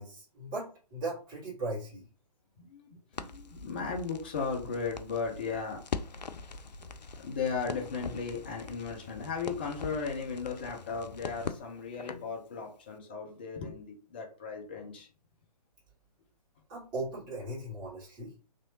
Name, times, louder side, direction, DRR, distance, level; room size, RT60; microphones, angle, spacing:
voice 1, 0.0-2.1 16.7-18.3, right 2 dB, 20° right, -9 dB, 1.7 m, -38 dB
voice 2, 2.6-5.8 6.8-6.9 7.1-15.1, left 5 dB, 15° left, 0 dB, 0.3 m, -36 dB
Crackle, 3.1-12.3, left 4 dB, 80° left, 0.4 m, -42 dB
3.0 x 2.8 x 2.6 m, 0.38 s
figure-of-eight pair, 135°, 21 cm